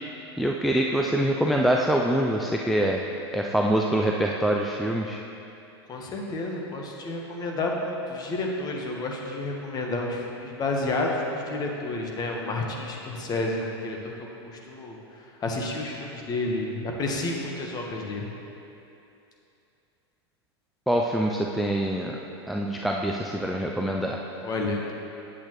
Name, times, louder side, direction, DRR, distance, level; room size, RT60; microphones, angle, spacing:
voice 1, 0.4-3.0 3.3-5.2 20.9-22.2 22.5-24.2, right 1 dB, ahead, -1 dB, 0.3 m, -25 dB
voice 2, 5.9-14.1 14.4-15.0 15.4-18.3 24.4-24.9, left 2 dB, 30° left, 0 dB, 1.1 m, -30 dB
8.6 x 7.8 x 3.1 m, 2.8 s
hypercardioid pair, 110°, 14 cm